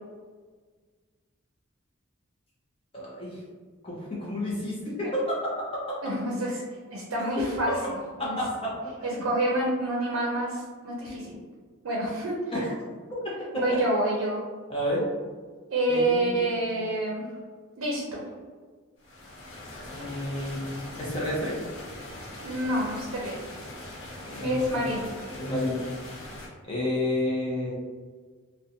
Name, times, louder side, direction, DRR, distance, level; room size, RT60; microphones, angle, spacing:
voice 1, 2.9-3.4 3.8-5.4 8.2-8.7 9.0-9.2 12.5-12.6 14.7-15.1 15.9-16.4 16.8-16.9 19.9-21.6 24.2-24.8 25.4-25.8 26.7-27.7, left 1 dB, 25° left, -6 dB, 0.5 m, -30 dB
voice 2, 6.0-6.6 6.9-8.4 9.0-11.4 11.8-12.4 13.6-14.4 15.7-17.2 17.8-18.2 22.4-23.4 24.4-25.1, right 1 dB, 75° right, -3 dB, 0.5 m, -28 dB
rain gutter sink roof, 19.0-26.5, left 1 dB, 80° left, 0.8 m, -41 dB
2.5 x 2.1 x 2.7 m, 1.5 s
head